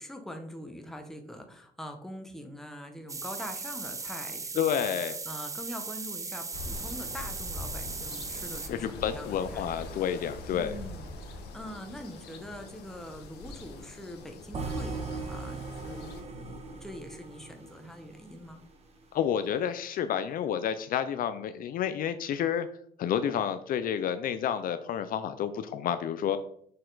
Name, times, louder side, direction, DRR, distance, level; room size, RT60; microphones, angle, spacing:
voice 1, 0.0-9.7 10.5-18.6, equal, ahead, 4 dB, 1.0 m, -44 dB
sound 1, 3.1-8.7, right 4 dB, 20° right, 0.5 m, -38 dB
voice 2, 4.6-5.1 8.7-10.7 19.1-22.7 23.0-26.4, left 9 dB, 55° left, 11 dB, 0.5 m, -30 dB
sound 2, 6.5-16.2, left 2 dB, 75° left, 1.2 m, -43 dB
sound 3, 14.5-18.6, right 3 dB, 40° right, 1.2 m, -38 dB
6.5 x 4.3 x 4.0 m, 0.64 s
cardioid pair, 110°, 17 cm